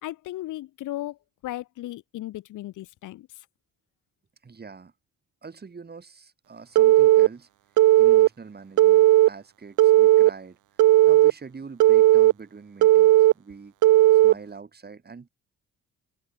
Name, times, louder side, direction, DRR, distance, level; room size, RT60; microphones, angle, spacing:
voice 1, 0.0-3.5, left 15 dB, 85° left, 3.8 m, -36 dB
voice 2, 4.4-4.9 5.4-7.5 8.0-10.6 11.1-13.7 14.1-15.3, right 5 dB, 30° right, 6.6 m, -43 dB
Telephone, 6.7-7.3 7.8-8.3 8.8-9.3 9.8-10.3 10.8-11.3 11.8-12.3 12.8-13.3 13.8-14.3, right 15 dB, 80° right, 1.0 m, -15 dB
cardioid pair, 90°, 30 cm